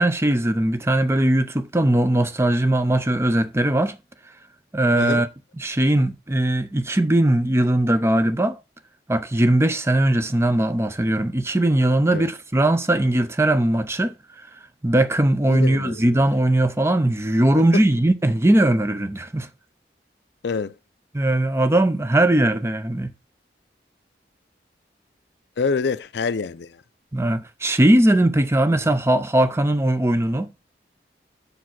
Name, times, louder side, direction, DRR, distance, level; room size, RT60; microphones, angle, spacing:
voice 1, 0.0-4.0 4.7-5.3 5.6-8.6 9.1-14.1 14.8-19.5 21.1-23.1 27.1-30.5, right 1 dB, 15° right, 0.6 m, -19 dB
voice 2, 15.5-16.2 17.5-17.6 20.4-20.7 25.6-26.8, left 4 dB, 75° left, 0.5 m, -26 dB
6.6 x 5.0 x 5.8 m
head